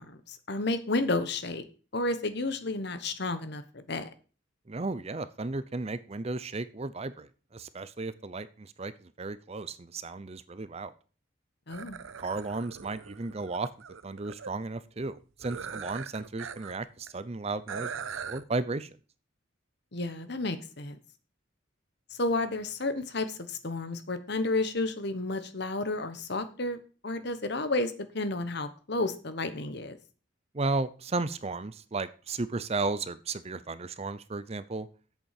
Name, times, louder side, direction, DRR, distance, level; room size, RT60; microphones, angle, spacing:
voice 1, 0.0-1.6 1.9-4.1 11.7-12.0 19.9-21.0 22.2-26.8 27.0-30.0, left 2 dB, 55° left, 11 dB, 1.3 m, -31 dB
voice 2, 4.7-10.9 12.2-13.7 14.0-17.9 18.2-18.9 30.5-34.9, right 3 dB, 30° right, 14 dB, 0.6 m, -34 dB
sound 1, 11.7-14.5 15.4-16.8 17.1-17.2 17.7-18.4, right 6 dB, 85° right, 0.7 m, -41 dB
8.1 x 7.1 x 7.6 m, 0.38 s
head